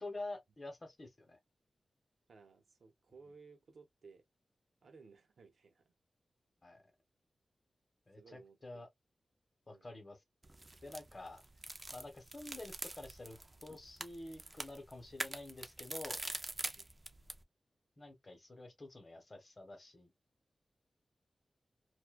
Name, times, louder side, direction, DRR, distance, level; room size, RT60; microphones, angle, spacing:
voice 1, 0.0-1.4 6.6-6.9 8.1-8.9 9.7-10.2 10.8-11.4 11.9-16.2 18.0-20.1, left 2 dB, 30° left, 0.8 m, -48 dB
voice 2, 2.3-4.3 4.8-5.9 8.2-8.9 9.7-9.9 16.7-16.9, right 4 dB, 75° right, 0.7 m, -59 dB
sound 1, 10.4-17.4, right 2 dB, 25° right, 0.3 m, -45 dB
2.6 x 2.2 x 2.2 m
wide cardioid pair, 150°, 0 cm